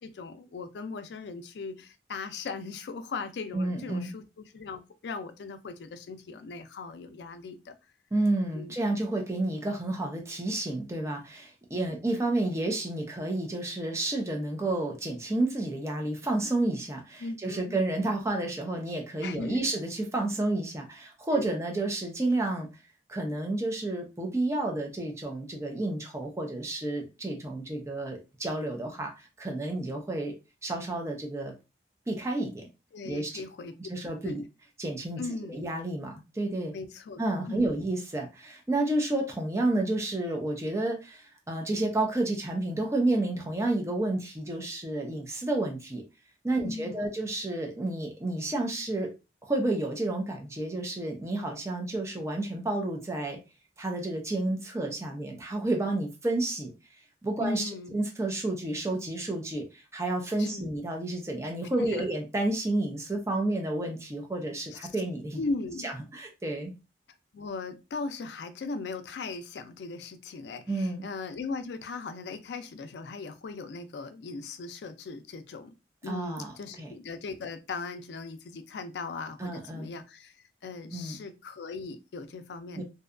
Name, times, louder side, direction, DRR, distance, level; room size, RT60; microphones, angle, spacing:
voice 1, 0.0-7.8 8.5-8.8 11.8-12.1 17.2-17.8 19.2-19.7 21.3-21.5 32.9-33.8 34.2-34.4 35.2-35.6 36.7-37.2 37.5-37.8 46.6-47.1 57.4-58.0 60.4-60.7 61.8-62.1 64.7-64.9 65.3-65.9 67.1-75.7 76.0-82.8, left 4 dB, 75° left, 9 dB, 0.4 m, -38 dB
voice 2, 3.5-4.1 8.1-22.7 23.1-30.3 30.6-31.5 32.1-32.7 33.1-33.4 33.9-34.4 34.8-35.2 35.5-36.7 37.2-46.0 46.4-49.1 49.4-53.4 53.8-56.7 57.2-57.6 57.9-59.6 59.9-65.4 65.8-66.7 70.7-71.0 76.1-76.5 76.8-76.9 79.4-79.9 80.9-81.2 82.8-82.9, right 2 dB, 15° right, 2 dB, 0.5 m, -30 dB
2.7 x 2.2 x 2.4 m, 0.27 s
head